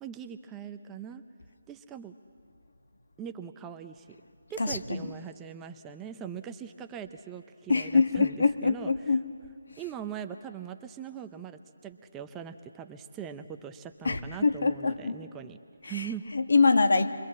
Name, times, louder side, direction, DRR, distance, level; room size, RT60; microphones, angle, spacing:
voice 1, 0.0-1.2 1.7-2.1 3.2-4.1 4.5-8.3 8.6-8.9 9.8-15.6 15.8-16.2, right 8 dB, 10° right, 7 dB, 0.7 m, -41 dB
voice 2, 4.6-5.1 7.7-9.2 14.0-15.2 15.8-17.1, left 4 dB, 70° left, 8 dB, 1.4 m, -25 dB
27.5 x 23.0 x 7.6 m, 2.3 s
figure-of-eight pair, 160°, 0 cm